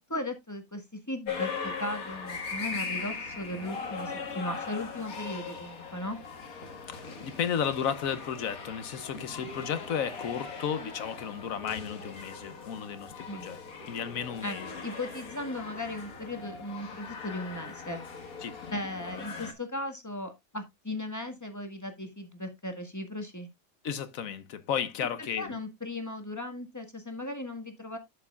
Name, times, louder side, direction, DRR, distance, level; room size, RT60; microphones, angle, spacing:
voice 1, 0.0-6.2 13.3-13.5 14.4-14.6 14.8-18.0 18.7-23.5 25.4-28.0, left 1 dB, 15° left, 1.4 m, -37 dB
sound 1, 1.3-19.5, left 5 dB, 90° left, 2.0 m, -40 dB
voice 2, 6.9-13.6 13.9-14.7 18.4-18.6 23.8-25.6, left 8 dB, 75° left, 1.3 m, -33 dB
11.5 x 6.7 x 2.3 m
omnidirectional pair, 1.5 m